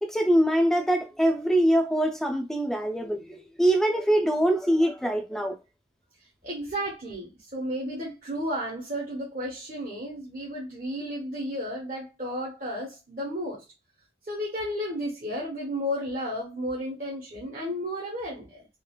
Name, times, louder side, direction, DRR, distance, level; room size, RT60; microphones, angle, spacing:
voice 1, 0.0-5.6, right 1 dB, 5° left, 0.4 m, -23 dB
voice 2, 6.4-13.6 14.3-18.7, equal, 50° right, 0.9 m, -33 dB
3.8 x 2.4 x 2.2 m
head